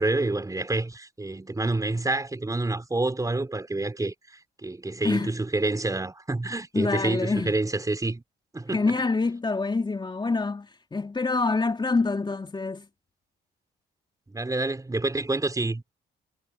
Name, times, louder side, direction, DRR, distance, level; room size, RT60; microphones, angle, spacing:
voice 1, 0.0-4.1 4.6-8.2 8.5-8.8 14.3-15.9, right 2 dB, 15° right, 4.4 m, -28 dB
voice 2, 6.7-7.5 8.7-12.9, left 3 dB, 25° left, 3.1 m, -26 dB
cardioid pair, 90°, 20 cm